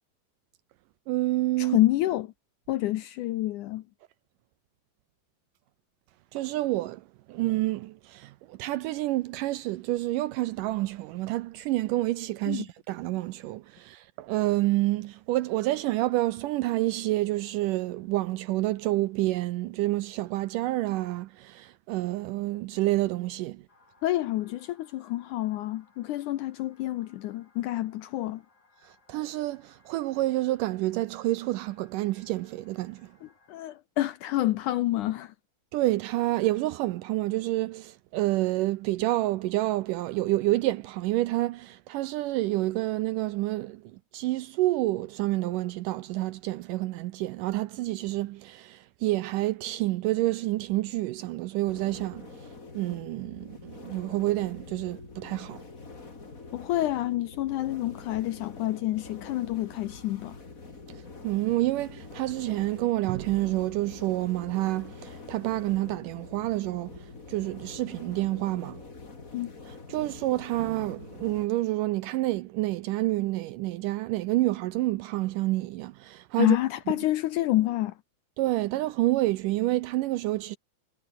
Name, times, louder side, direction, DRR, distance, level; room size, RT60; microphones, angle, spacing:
voice 1, 1.1-1.8 6.3-23.6 28.8-33.1 35.7-43.8 44.1-52.3 52.7-55.6 61.2-68.8 69.9-76.6 78.4-80.6, right 17 dB, 85° right, 2.0 m, -28 dB
voice 2, 1.6-2.3 2.7-3.8 12.5-12.7 24.0-28.4 33.2-35.3 56.5-60.4 69.3-69.5 76.4-77.9, left 15 dB, 75° left, 1.9 m, -28 dB
sound 1, 23.7-33.5, left 3 dB, 50° left, 8.5 m, -64 dB
sound 2, 51.7-71.5, left 3 dB, 25° left, 3.0 m, -45 dB
omnidirectional pair, 4.3 m